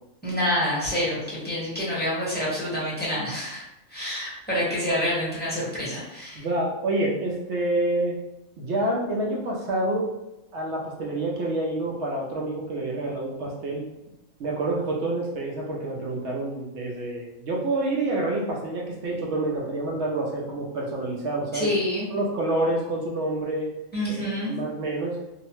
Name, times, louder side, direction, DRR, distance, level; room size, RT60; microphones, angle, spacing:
voice 1, 0.2-3.6 3.9-6.4 21.5-22.1 23.9-24.5, left 1 dB, 10° left, -9 dB, 0.9 m, -27 dB
voice 2, 6.3-8.2 8.6-10.1 10.5-13.8 14.4-21.7 22.1-23.7 24.1-25.2, right 2 dB, 65° right, -2 dB, 0.8 m, -28 dB
2.7 x 2.0 x 2.9 m, 0.95 s
omnidirectional pair, 1.4 m